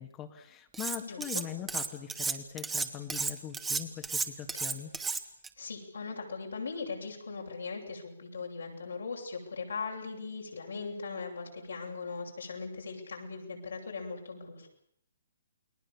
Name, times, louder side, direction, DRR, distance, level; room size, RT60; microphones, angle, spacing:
voice 1, 0.0-4.9, left 10 dB, 20° left, 5 dB, 1.7 m, -41 dB
Cutlery silverware, 0.7-1.4 1.7-5.5, right 4 dB, 10° right, 1.6 m, -33 dB
voice 2, 1.0-1.4 5.6-14.7, left 4 dB, 85° left, -1 dB, 7.1 m, -39 dB
29.5 x 20.0 x 7.1 m, 0.72 s
hypercardioid pair, 150°, 0 cm